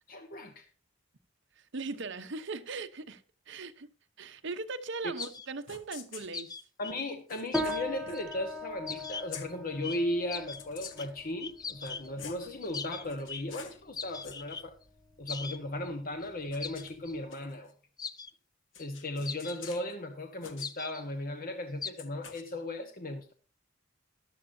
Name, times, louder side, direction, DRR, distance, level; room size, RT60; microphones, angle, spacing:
voice 1, 0.1-0.6 6.8-14.7 15.2-17.7 18.8-23.3, left 1 dB, 45° left, 1.3 m, -36 dB
voice 2, 1.6-3.9 4.2-6.5, right 3 dB, 65° right, 0.9 m, -39 dB
sound 1, 5.2-5.4 5.7-6.3 7.3-8.2 8.9-9.0 9.3-9.5 10.5-11.2 11.7-12.5 13.0-13.8 14.1-14.4 16.2-17.7 18.7-19.9 20.4-20.7 22.0-22.4, left 6 dB, 70° left, 1.3 m, -48 dB
sound 2, 5.2-5.5 6.2-7.8 8.1-8.4 8.9-9.5 9.8-10.0 10.3-11.1 11.4-12.1 12.6-13.4 14.0-14.6 15.3-15.6 15.9-16.0 16.2-16.3 16.6-17.1 18.0-18.3 18.8-18.9 19.3-19.7 20.6-21.0 21.8-21.9, left 5 dB, 20° left, 0.4 m, -40 dB
sound 3, 7.5-17.2, left 1 dB, ahead, 1.3 m, -41 dB
14.0 x 12.0 x 2.8 m
head